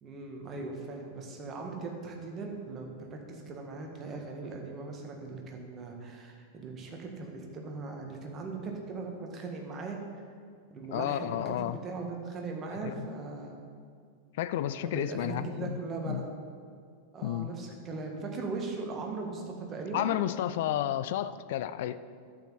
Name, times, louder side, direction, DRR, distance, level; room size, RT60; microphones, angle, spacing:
voice 1, 0.0-10.0 10.7-13.6 14.8-16.2 17.1-20.1, right 3 dB, 25° right, 1 dB, 1.7 m, -39 dB
voice 2, 10.9-11.8 12.8-13.1 14.4-15.7 16.1-16.2 17.2-17.5 19.9-22.0, left 12 dB, 55° left, 13 dB, 0.3 m, -31 dB
11.5 x 8.3 x 4.1 m, 2.2 s
figure-of-eight pair, 90°, 0 cm